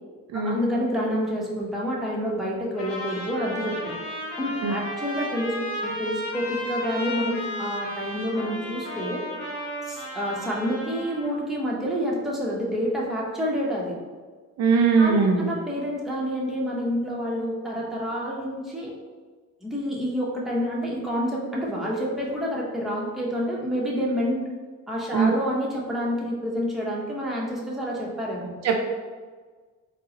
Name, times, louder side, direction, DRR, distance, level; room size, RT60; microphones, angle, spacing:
voice 1, 0.4-3.9 4.4-9.2 9.9-13.9 15.0-18.9 19.6-24.4 24.9-28.5, equal, ahead, -5 dB, 0.7 m, -28 dB
Trumpet, 2.8-11.3, left 1 dB, 55° left, 1.0 m, -34 dB
voice 2, 14.6-15.5 25.1-25.3 28.6-28.9, right 5 dB, 60° right, 2 dB, 0.5 m, -20 dB
3.7 x 2.0 x 2.7 m, 1.4 s
cardioid pair, 90°, 30 cm